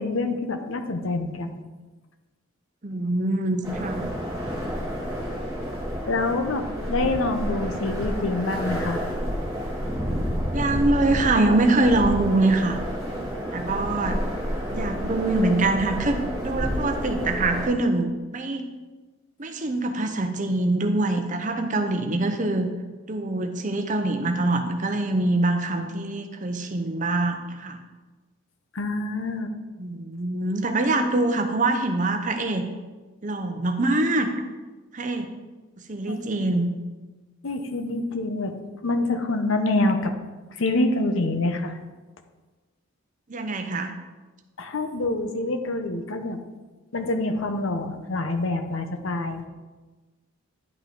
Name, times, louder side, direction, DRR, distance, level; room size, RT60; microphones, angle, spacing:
voice 1, 0.0-1.6 6.1-9.0 28.7-29.6 36.1-36.5 37.4-38.5 38.8-40.1 40.5-41.8 44.6-46.4 46.9-49.4, left 2 dB, 70° left, 7 dB, 0.8 m, -26 dB
voice 2, 2.8-4.1 10.5-12.8 13.5-14.2 14.7-18.7 19.4-22.7 23.1-27.8 29.8-32.7 33.2-34.3 34.9-35.3 35.9-36.7 43.3-43.9, right 2 dB, 35° right, 6 dB, 0.7 m, -24 dB
sound 1, 3.6-17.7, equal, 15° right, 2.5 m, -30 dB
10.0 x 5.8 x 3.8 m, 1.2 s
head